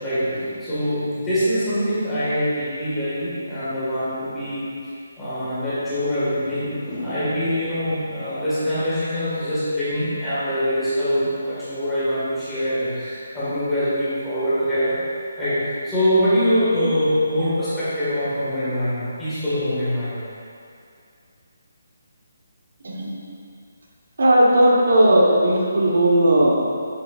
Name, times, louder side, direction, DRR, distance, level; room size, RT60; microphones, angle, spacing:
voice 1, 0.0-4.6 5.2-15.0 15.4-20.2, equal, 5° left, -14 dB, 1.7 m, -24 dB
voice 2, 22.8-23.2 24.2-26.6, right 1 dB, 60° right, -3 dB, 1.1 m, -16 dB
7.8 x 7.7 x 2.4 m, 2.4 s
hypercardioid pair, 180°, 0 cm